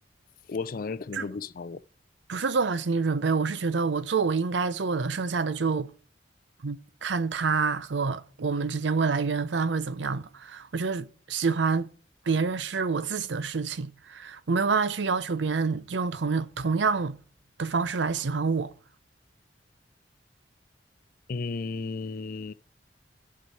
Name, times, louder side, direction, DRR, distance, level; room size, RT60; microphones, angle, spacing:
voice 1, 0.5-1.8 21.3-22.5, left 4 dB, 50° left, 0.4 m, -34 dB
voice 2, 2.3-5.9 6.6-11.9 12.3-17.2 17.6-18.7, right 4 dB, 90° right, 0.6 m, -27 dB
12.0 x 4.7 x 4.7 m
head